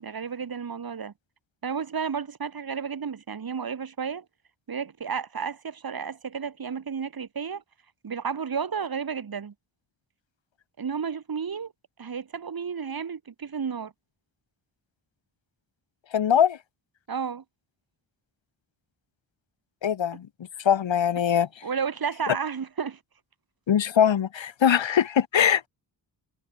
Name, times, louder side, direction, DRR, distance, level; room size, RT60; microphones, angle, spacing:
voice 1, 0.0-1.1 1.6-4.2 4.7-7.6 8.0-9.5 10.8-11.7 12.0-13.9 17.1-17.4 21.6-23.0, right 6 dB, 50° right, 6.2 m, -32 dB
voice 2, 16.1-16.6 19.8-20.3 20.6-21.6 22.3-22.4 23.7-25.7, left 9 dB, 85° left, 6.4 m, -22 dB
wide cardioid pair, 125°, 44 cm